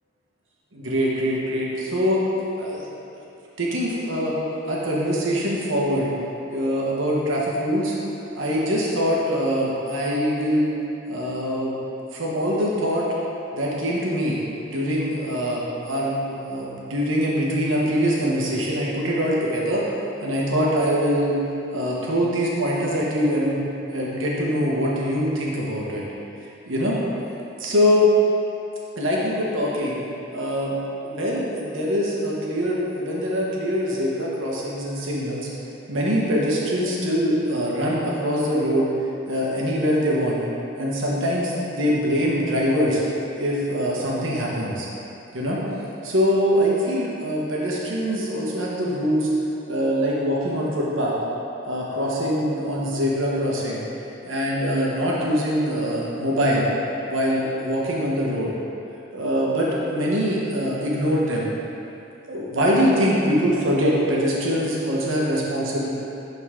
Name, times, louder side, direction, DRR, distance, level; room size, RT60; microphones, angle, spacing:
voice 1, 0.7-2.2 2.6-2.9 3.6-4.3 4.7-6.1 6.5-8.0 8.4-10.8 11.1-11.8 12.1-13.1 13.5-14.4 14.7-19.8 20.2-21.4 21.7-23.6 23.9-26.0 26.6-27.0 27.6-28.1 29.0-30.0 30.3-30.8 31.0-35.5 35.9-38.9 39.3-40.4 40.8-43.0 43.4-44.9 45.3-45.6 46.0-49.3 49.7-51.1 51.6-53.8 54.2-56.7 57.1-58.5 59.1-61.5 62.3-65.9, equal, 75° right, -4 dB, 1.3 m, -23 dB
11.0 x 4.0 x 3.7 m, 2.9 s
head